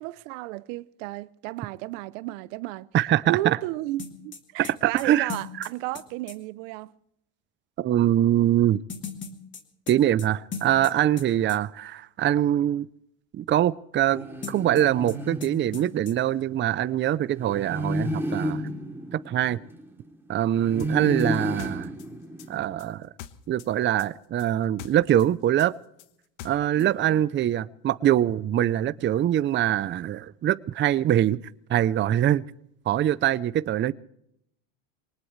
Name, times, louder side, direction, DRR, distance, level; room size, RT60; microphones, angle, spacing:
voice 1, 0.0-2.9 3.3-6.9 26.7-27.2, right 18 dB, 80° right, 0.8 m, -33 dB
voice 2, 2.9-3.6 4.8-5.3 5.6-5.7 7.8-8.8 9.9-12.9 13.3-18.6 19.1-19.6 20.3-21.9 22.5-23.1 23.5-25.7 26.4-31.4 31.7-32.4 32.9-33.9, right 12 dB, 30° right, 0.5 m, -23 dB
sound 1, 4.0-6.4 8.9-11.2 11.5-11.6 14.4-15.2 15.4-15.5 15.7-16.1, left 6 dB, 30° left, 2.2 m, -38 dB
sound 2, 14.1-16.2 17.4-20.1 20.6-22.8, equal, 5° right, 3.1 m, -32 dB
sound 3, 20.8-23.7 24.0-26.9, left 11 dB, 75° left, 1.3 m, -44 dB
23.5 x 19.0 x 3.2 m
supercardioid pair, 110°, 38 cm